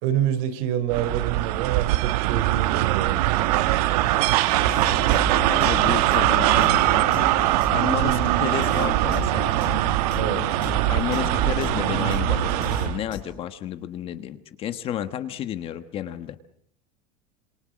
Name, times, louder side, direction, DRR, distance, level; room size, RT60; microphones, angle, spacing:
voice 1, 0.0-3.4 10.2-10.6, right 10 dB, 60° right, 11 dB, 3.6 m, -27 dB
sound 1, 0.9-13.0, right 16 dB, 75° right, 1.2 m, -22 dB
sound 2, 3.2-9.7, left 3 dB, 10° left, 4.7 m, -40 dB
sound 3, 4.7-13.2, left 10 dB, 45° left, 5.2 m, -35 dB
voice 2, 5.5-7.2 7.7-9.5 10.9-16.4, left 10 dB, 30° left, 11 dB, 1.3 m, -32 dB
28.0 x 27.0 x 6.3 m, 0.65 s
cardioid pair, 180°, 20 cm